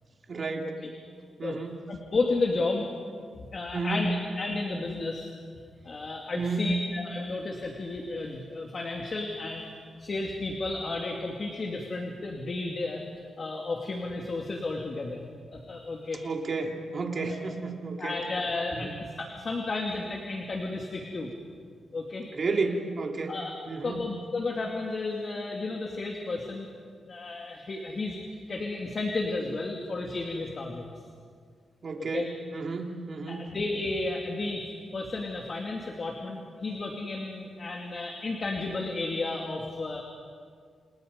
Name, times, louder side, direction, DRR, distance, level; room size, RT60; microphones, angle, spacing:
voice 1, 0.3-0.7 1.4-1.8 3.7-4.1 6.3-6.7 16.2-18.2 18.7-18.9 22.3-23.4 23.7-24.1 31.8-33.5, right 3 dB, 45° right, 2 dB, 3.0 m, -32 dB
voice 2, 1.9-2.9 3.4-4.1 4.4-5.3 5.8-9.7 10.0-13.1 13.4-15.2 15.5-16.2 17.3-17.5 18.0-21.3 21.9-22.3 23.3-23.5 23.8-26.7 27.1-28.2 28.5-30.9 32.0-32.2 33.3-34.6 34.9-40.0, left 3 dB, 40° left, 1 dB, 2.6 m, -32 dB
29.5 x 29.0 x 5.3 m, 2.1 s
cardioid pair, 110°, 0 cm